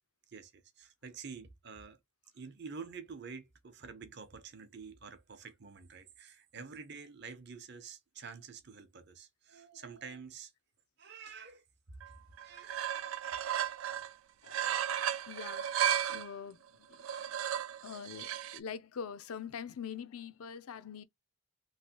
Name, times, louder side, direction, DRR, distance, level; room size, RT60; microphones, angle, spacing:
voice 1, 0.3-2.0 2.3-10.5 11.0-11.6 12.4-12.8 13.2-13.5, right 5 dB, 50° right, 0.7 m, -48 dB
sound 1, 12.0-12.1 12.4-14.1 14.5-16.3 16.9-18.6, right 9 dB, 70° right, 0.4 m, -34 dB
voice 2, 14.4-17.1 17.8-21.0, left 7 dB, 85° left, 0.5 m, -45 dB
3.2 x 2.5 x 2.8 m
head